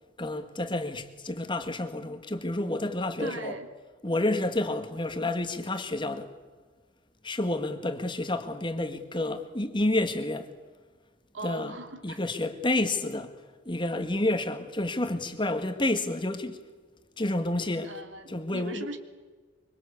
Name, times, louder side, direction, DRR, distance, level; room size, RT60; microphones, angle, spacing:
voice 1, 0.2-3.5 4.0-6.3 7.2-10.5 11.4-11.8 12.0-13.4 13.7-16.6 17.2-17.9 18.3-18.9, left 2 dB, 25° left, 1.8 m, -29 dB
voice 2, 3.2-3.7 11.3-12.2 17.8-19.0, right 2 dB, 85° right, 3.1 m, -39 dB
25.5 x 24.5 x 8.4 m
head